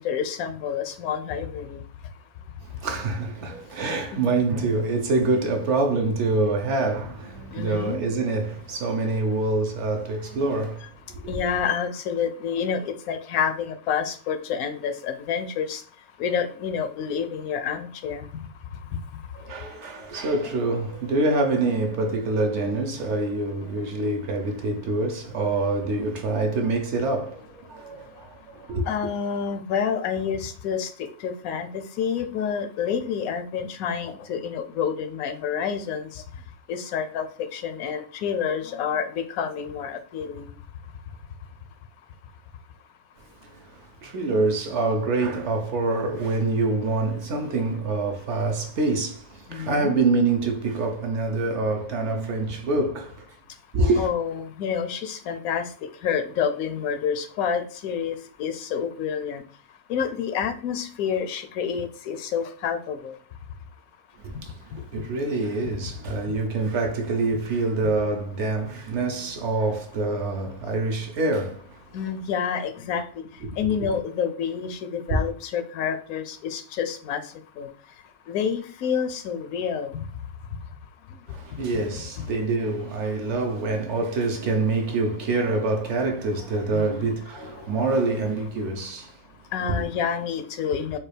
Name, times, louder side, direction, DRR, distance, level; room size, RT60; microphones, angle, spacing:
voice 1, 0.0-1.8 4.1-4.2 7.5-8.0 11.3-15.8 16.2-18.3 28.9-30.9 31.2-36.1 36.7-37.3 37.5-40.5 49.5-50.0 54.0-55.6 56.0-59.4 59.9-63.2 71.9-73.0 73.6-77.2 77.6-77.7 78.3-80.0 86.7-87.1 89.5-91.0, left 7 dB, 85° left, 1.0 m, -28 dB
voice 2, 2.6-11.3 19.3-28.9 43.4-53.3 53.7-54.1 64.2-71.8 73.4-73.5 73.8-73.9 81.3-89.2, right 3 dB, 65° right, 0.8 m, -26 dB
3.7 x 2.3 x 3.3 m
omnidirectional pair, 1.4 m